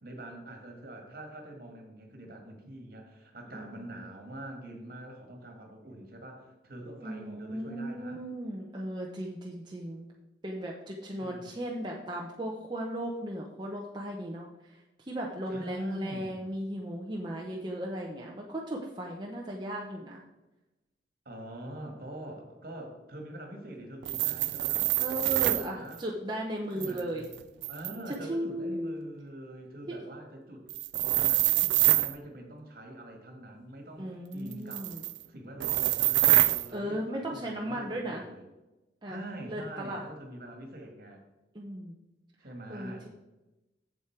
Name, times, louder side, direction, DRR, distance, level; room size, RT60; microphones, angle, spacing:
voice 1, 0.0-8.2 11.2-11.5 15.5-16.5 21.3-24.9 25.3-26.0 26.7-27.2 27.7-30.7 31.0-35.0 35.3-38.5 39.1-41.3 42.4-43.1, right 1 dB, 55° right, 3 dB, 1.9 m, -44 dB
voice 2, 7.0-10.1 10.4-14.5 15.1-20.2 25.0-27.2 28.3-29.1 29.9-30.0 34.0-35.0 36.7-38.2 39.0-39.2 39.5-40.0 41.5-41.9 42.7-43.1, right 1 dB, 25° right, -2 dB, 0.8 m, -36 dB
sound 1, 24.0-25.7 26.8-28.1 30.7-32.1 34.5-35.2 35.6-36.7, right 16 dB, 70° right, 0.3 m, -26 dB
8.0 x 7.4 x 4.5 m, 1.0 s
head